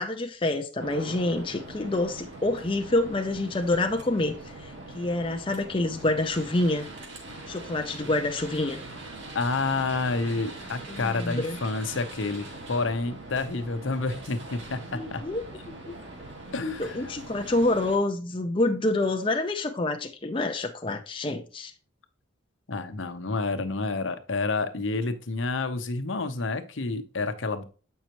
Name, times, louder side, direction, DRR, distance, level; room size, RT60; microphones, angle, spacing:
voice 1, 0.0-6.9 7.5-8.8 10.9-11.6 14.9-15.4 15.9-16.0 16.6-21.7, left 2 dB, 25° left, 0.6 m, -27 dB
sound 1, 0.8-18.0, right 2 dB, 65° right, 2.2 m, -42 dB
voice 2, 9.3-15.2 16.5-17.1 22.7-27.6, left 3 dB, 75° left, 0.8 m, -29 dB
8.0 x 5.5 x 3.0 m
head